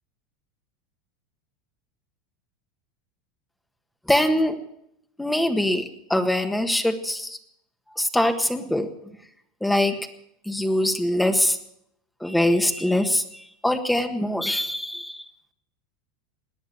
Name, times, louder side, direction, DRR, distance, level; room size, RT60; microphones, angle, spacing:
voice 1, 4.1-4.6 5.2-5.8 6.1-7.4 8.0-8.9 9.6-9.9 10.5-11.6 12.2-13.2 13.6-15.2, left 1 dB, 5° left, 7 dB, 1.6 m, -23 dB
18.0 x 10.0 x 7.8 m, 0.77 s
hypercardioid pair, 105°, 0 cm